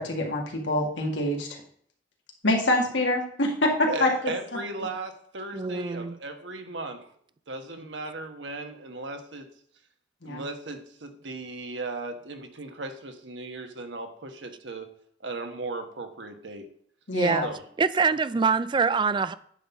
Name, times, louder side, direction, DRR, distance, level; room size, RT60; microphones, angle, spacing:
voice 1, 0.0-1.5 2.4-4.1 10.2-10.4 17.1-17.5, left 1 dB, 85° left, 2.1 m, -25 dB
voice 2, 3.9-7.1 7.5-9.5 10.2-14.9 15.2-16.7 17.4-17.6, right 2 dB, 80° right, 1.3 m, -36 dB
voice 3, 5.5-6.1 17.1-17.5 17.8-19.3, right 5 dB, 25° right, 0.4 m, -24 dB
10.0 x 4.0 x 7.0 m
head